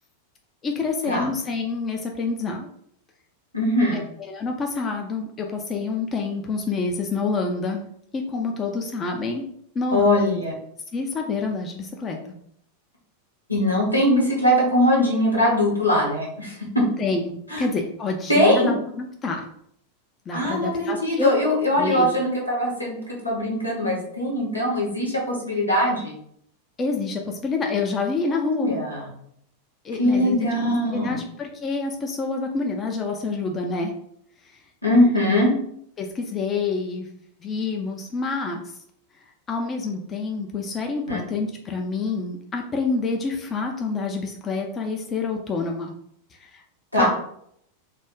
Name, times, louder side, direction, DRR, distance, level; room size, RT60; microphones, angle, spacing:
voice 1, 0.6-2.7 3.9-7.8 8.1-9.4 9.7-10.0 10.9-12.2 17.0-19.4 20.3-21.3 21.8-22.1 26.8-28.7 29.8-30.5 30.9-33.9 36.0-37.1 37.4-38.6 39.5-45.9 46.3-46.6 47.0-47.1, left 4 dB, 25° left, 2 dB, 0.4 m, -27 dB
voice 2, 3.5-4.0 9.9-10.5 13.5-16.8 17.5-17.7 18.3-18.7 20.3-26.2 28.3-29.0 30.0-31.2 34.8-35.5 41.1-41.2 46.9-47.1, left 1 dB, 85° left, -3 dB, 0.9 m, -21 dB
2.3 x 2.1 x 3.5 m, 0.69 s
figure-of-eight pair, 90°, 0 cm